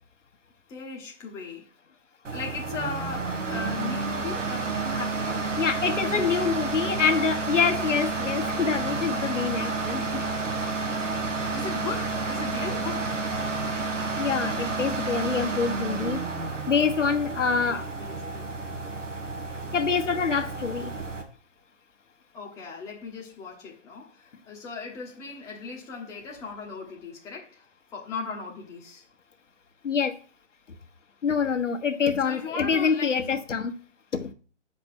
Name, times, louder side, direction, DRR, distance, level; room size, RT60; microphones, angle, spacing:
voice 1, 0.7-1.7 2.3-5.5 6.0-6.5 11.5-13.3 17.5-18.5 22.3-29.0 32.2-33.4, left 4 dB, 10° left, 1.0 m, -38 dB
sound 1, 2.2-21.2, right 3 dB, 75° right, 2.2 m, -30 dB
voice 2, 5.6-10.0 14.2-16.2 16.7-17.8 19.7-20.9 29.8-30.2 31.2-33.7 34.1-34.3, left 6 dB, 75° left, 1.3 m, -26 dB
6.5 x 5.2 x 5.9 m
figure-of-eight pair, 145°, 37 cm